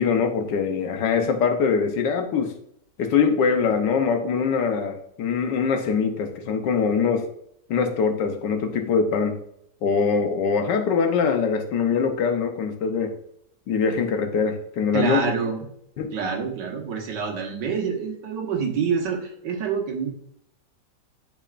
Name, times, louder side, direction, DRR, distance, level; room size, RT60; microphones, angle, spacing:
voice 1, 0.0-2.5 3.0-7.2 7.7-9.4 9.8-13.1 13.7-15.2 16.0-16.1, left 5 dB, 85° left, 6 dB, 1.5 m, -23 dB
voice 2, 14.9-15.6 16.1-20.1, right 6 dB, 85° right, 2 dB, 1.8 m, -27 dB
9.1 x 4.2 x 2.5 m, 0.72 s
omnidirectional pair, 1.9 m